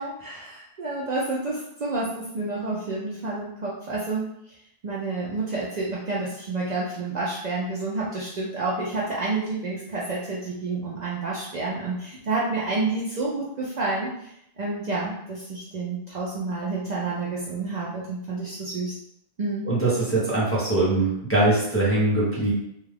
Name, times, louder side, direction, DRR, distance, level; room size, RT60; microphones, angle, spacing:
voice 1, 0.0-4.2 4.8-14.1 14.6-19.0 19.4-19.7, right 3 dB, 55° right, -6 dB, 0.6 m, -29 dB
voice 2, 19.7-22.5, right 2 dB, 15° left, -9 dB, 0.7 m, -22 dB
2.3 x 2.3 x 3.2 m, 0.76 s
omnidirectional pair, 1.0 m